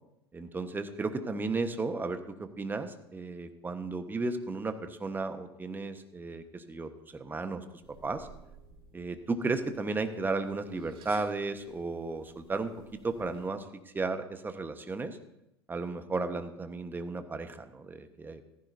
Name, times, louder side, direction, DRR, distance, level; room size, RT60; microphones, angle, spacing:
voice 1, 0.3-7.6 8.0-8.3 8.9-13.6 13.9-15.2 15.7-18.4, right 3 dB, 15° right, 9 dB, 1.2 m, -34 dB
sound 1, 7.8-13.5, right 4 dB, 40° right, 4.7 m, -56 dB
15.0 x 14.5 x 2.7 m, 0.84 s
figure-of-eight pair, 85°, 14 cm